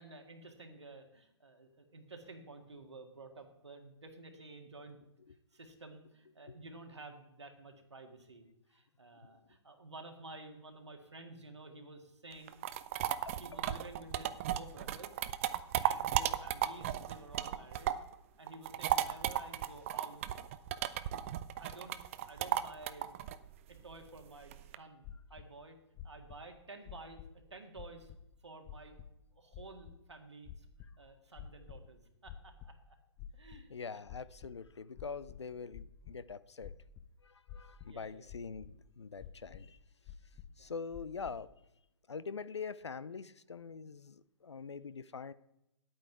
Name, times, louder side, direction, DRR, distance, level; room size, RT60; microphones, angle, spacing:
voice 1, 0.0-5.0 5.5-12.6 13.4-15.1 15.8-18.0 18.4-20.2 20.8-21.1 21.6-22.0 22.3-23.4 23.7-25.8 26.0-27.2 27.5-28.1 28.4-29.0 29.4-30.7 31.0-33.0 33.3-34.0 37.8-38.3 40.6-40.7, right 2 dB, 75° right, 4 dB, 1.8 m, -52 dB
sound 1, 12.3-18.1 18.5-24.7, right 12 dB, 30° right, 0.4 m, -35 dB
voice 2, 13.1-13.8 33.7-36.7 37.2-39.8 40.6-41.5 42.1-45.3, left 5 dB, 75° left, 16 dB, 0.5 m, -44 dB
sound 2, 25.0-25.5 25.9-26.4 26.8-27.4 27.8-28.2 28.7-29.1 29.5-29.9 30.4-30.9 31.3-31.9 32.2-32.7 33.2-33.7 34.1-34.5 34.9-36.1 36.6-37.0 37.5-38.0 38.3-38.7 39.2-39.6 40.0-40.6 40.9-41.3, left 9 dB, 20° left, 0.7 m, -49 dB
10.5 x 8.6 x 4.7 m, 0.85 s
figure-of-eight pair, 125°, 15 cm